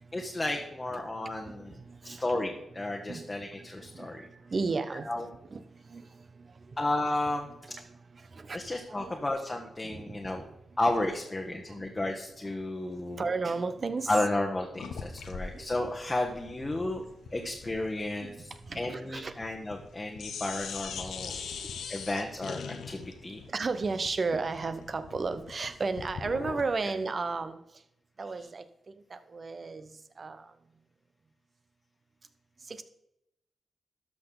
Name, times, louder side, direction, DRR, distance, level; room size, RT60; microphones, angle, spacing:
voice 1, 0.1-4.3 5.0-5.3 6.8-7.5 8.5-10.5 10.8-13.2 14.1-17.0 17.3-21.4 21.9-23.4 26.8-26.9 28.4-28.5, left 2 dB, 25° left, 1 dB, 1.1 m, -33 dB
voice 2, 1.9-2.4 2.9-3.3 3.9-5.1 5.5-5.6 5.9-6.0 7.7-7.8 8.3-8.6 8.9-9.1 9.8-10.2 11.7-11.9 13.1-14.1 15.5-15.7 17.4-17.5 18.2-19.3 23.5-27.6 28.2-28.6 29.1-29.9 30.2-30.4 32.7-32.8, right 4 dB, 50° right, 11 dB, 0.8 m, -33 dB
sound 1, 14.8-19.9 20.2-26.7, left 6 dB, 85° left, 0.7 m, -42 dB
12.5 x 5.9 x 3.9 m, 0.85 s
cardioid pair, 55°, 0 cm